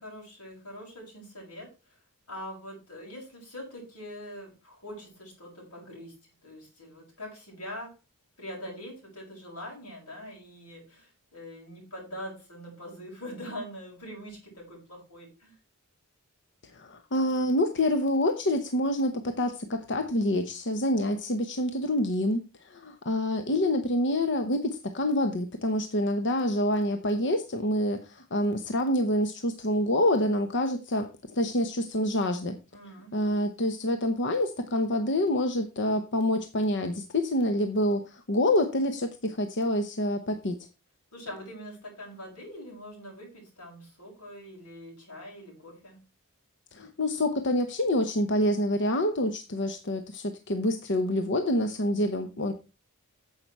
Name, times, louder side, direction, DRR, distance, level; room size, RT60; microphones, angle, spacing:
voice 1, 0.0-2.0 2.3-8.0 8.4-15.5 32.7-33.7 41.1-46.0, equal, 85° left, -1 dB, 6.8 m, -43 dB
voice 2, 16.7-32.6 33.1-40.6 46.7-52.5, left 1 dB, 55° left, 7 dB, 0.9 m, -27 dB
9.6 x 7.4 x 4.6 m, 0.30 s
head